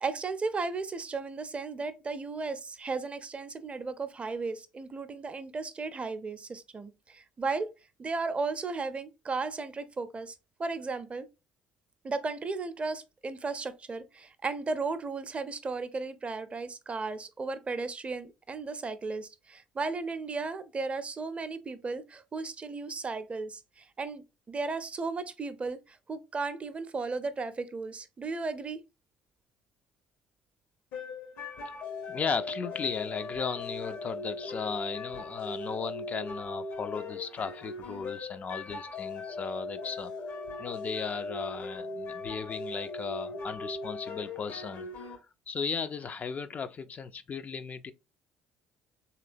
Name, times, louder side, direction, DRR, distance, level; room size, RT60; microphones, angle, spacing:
voice 1, 0.0-7.7 8.0-10.3 10.6-11.3 12.0-28.8, right 4 dB, 30° right, 0.5 m, -35 dB
sound 1, 30.9-45.2, left 3 dB, 65° left, 0.9 m, -39 dB
voice 2, 32.1-45.2 45.5-47.9, left 5 dB, 40° left, 0.3 m, -36 dB
3.2 x 2.9 x 2.5 m
hypercardioid pair, 55°, 4 cm